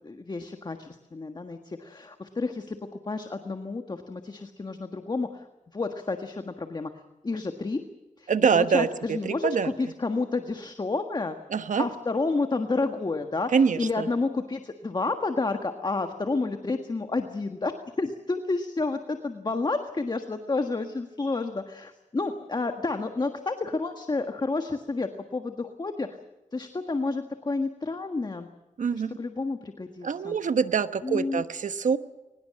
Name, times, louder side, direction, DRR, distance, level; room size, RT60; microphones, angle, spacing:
voice 1, 0.0-5.5 5.7-6.9 7.2-7.8 8.2-11.4 11.8-17.7 18.0-26.1 26.5-28.5 28.9-30.4 31.0-31.4, left 3 dB, 35° left, 6 dB, 1.5 m, -30 dB
voice 2, 8.3-9.7 11.5-11.9 13.5-14.1 28.8-29.2 30.0-32.0, right 6 dB, 75° right, 11 dB, 1.1 m, -25 dB
23.0 x 20.5 x 7.7 m, 1.0 s
wide cardioid pair, 105°, 13 cm